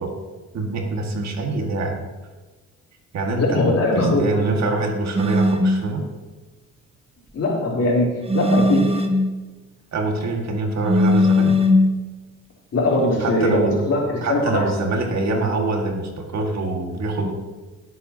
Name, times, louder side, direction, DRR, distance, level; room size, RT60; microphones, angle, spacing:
voice 1, 0.5-2.0 3.1-3.6 3.9-6.0 9.9-11.5 13.2-13.8 14.2-17.3, right 3 dB, 60° right, 2 dB, 2.1 m, -24 dB
voice 2, 3.3-4.3 7.3-8.9 12.7-14.7, left 2 dB, 55° left, -4 dB, 3.8 m, -20 dB
sound 1, 5.2-5.8 8.3-9.2 10.9-11.9, left 1 dB, 20° right, 1.3 m, -18 dB
17.0 x 8.0 x 2.9 m, 1.3 s
cardioid pair, 90°, 30 cm